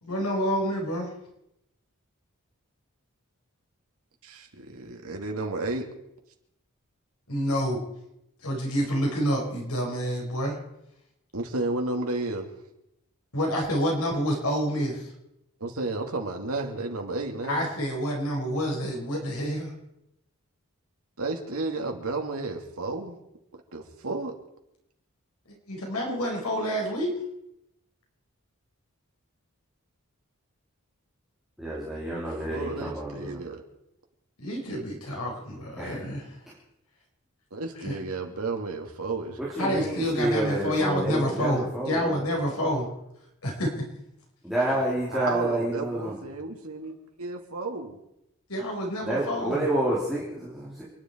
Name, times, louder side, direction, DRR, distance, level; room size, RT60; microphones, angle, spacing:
voice 1, 0.0-1.1 7.3-7.8 8.4-10.6 13.3-15.1 17.5-19.7 25.7-27.1 34.4-36.3 37.8-37.9 39.6-42.9 43.4-43.7 48.5-49.7, equal, 90° left, 0 dB, 4.9 m, -28 dB
voice 2, 4.2-5.9 11.3-12.5 15.6-17.7 21.2-23.2 23.5-24.3 32.4-33.6 37.5-40.2 44.7-48.0, right 3 dB, 85° right, 3 dB, 2.6 m, -33 dB
voice 3, 31.6-33.4 35.8-36.0 36.5-36.6 39.6-42.2 44.4-46.2 49.0-50.2 50.5-50.8, right 1 dB, ahead, -7 dB, 3.2 m, -29 dB
29.0 x 10.5 x 4.6 m, 0.84 s
head